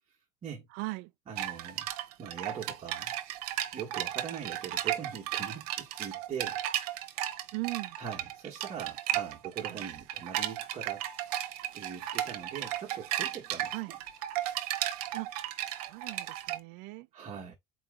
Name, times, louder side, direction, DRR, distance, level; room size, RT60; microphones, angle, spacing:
voice 1, 0.7-1.1 7.5-8.0 9.7-9.8 13.7-13.9 15.1-15.3 15.7-17.1, right 24 dB, 55° right, 0.4 m, -38 dB
voice 2, 1.3-1.9 2.2-3.1 3.7-6.6 8.0-11.1 11.7-14.0 17.1-17.5, right 7 dB, 30° right, 1.3 m, -42 dB
sound 1, 1.4-16.6, right 13 dB, 75° right, 0.8 m, -35 dB
4.2 x 3.1 x 3.6 m
supercardioid pair, 125°, 20 cm